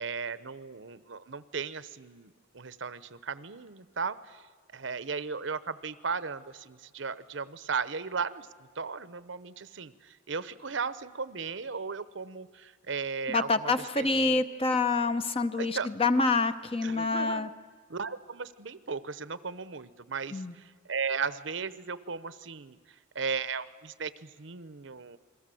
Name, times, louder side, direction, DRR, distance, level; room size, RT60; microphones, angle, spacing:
voice 1, 0.0-4.4 4.7-8.5 8.8-14.4 15.6-15.9 16.8-17.6 17.9-22.8 23.1-25.2, right 5 dB, 65° right, 15 dB, 0.8 m, -36 dB
voice 2, 13.3-17.5 20.3-20.5, left 3 dB, 30° left, 10 dB, 0.8 m, -27 dB
28.5 x 22.0 x 7.7 m, 1.5 s
head